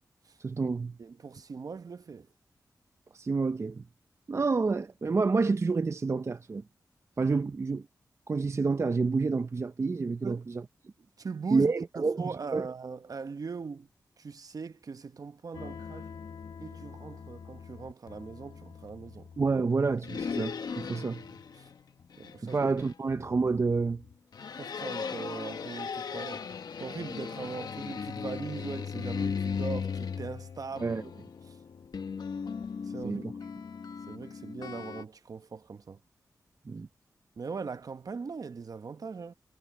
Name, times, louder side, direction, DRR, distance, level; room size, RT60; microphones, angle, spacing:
voice 1, 0.4-1.0 3.1-3.8 4.3-6.6 7.2-7.8 8.3-10.6 11.5-12.7 19.4-21.2 22.4-24.0 30.8-31.0 33.0-33.3 36.7-36.9, right 4 dB, 40° right, 0.5 m, -28 dB
voice 2, 1.0-2.3 10.2-10.4 11.2-13.9 14.2-16.1 16.6-19.3 21.6-21.7 22.2-22.6 24.6-26.5 26.8-31.0 31.4-31.6 32.8-33.2 34.1-36.0 37.4-39.3, right 5 dB, 60° right, 0.9 m, -40 dB
sound 1, 15.5-35.0, left 6 dB, 80° left, 1.2 m, -38 dB
cardioid pair, 65°, 7 cm